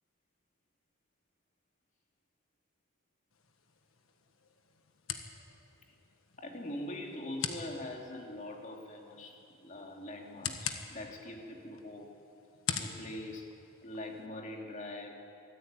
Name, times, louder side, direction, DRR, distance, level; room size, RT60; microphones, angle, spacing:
sound 1, 3.3-14.3, left 7 dB, 75° left, 1.5 m, -44 dB
voice 1, 6.4-12.1 12.8-13.5 13.8-15.1, left 1 dB, 35° left, 1 dB, 2.6 m, -43 dB
24.0 x 14.0 x 9.0 m, 2.6 s
head